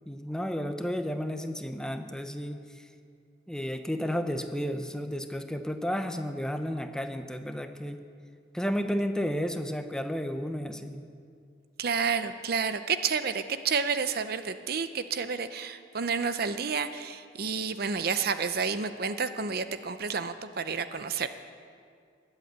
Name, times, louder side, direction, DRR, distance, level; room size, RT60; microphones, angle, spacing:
voice 1, 0.1-2.9 3.5-8.0 8.5-11.0, equal, 5° left, 7 dB, 0.8 m, -32 dB
voice 2, 11.8-21.3, right 5 dB, 55° right, 10 dB, 0.7 m, -30 dB
21.0 x 8.1 x 8.1 m, 2.2 s
head